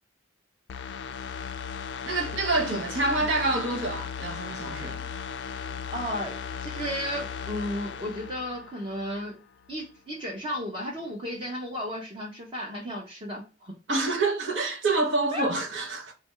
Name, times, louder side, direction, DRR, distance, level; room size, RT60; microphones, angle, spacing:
sound 1, 0.7-9.4 9.7-9.8, left 6 dB, 60° left, 0.3 m, -37 dB
voice 1, 2.1-5.1 13.9-16.1, right 2 dB, 70° right, 1.0 m, -27 dB
voice 2, 5.9-9.3 9.7-13.7 15.3-15.5, equal, 25° right, 0.8 m, -34 dB
3.6 x 2.5 x 4.3 m
head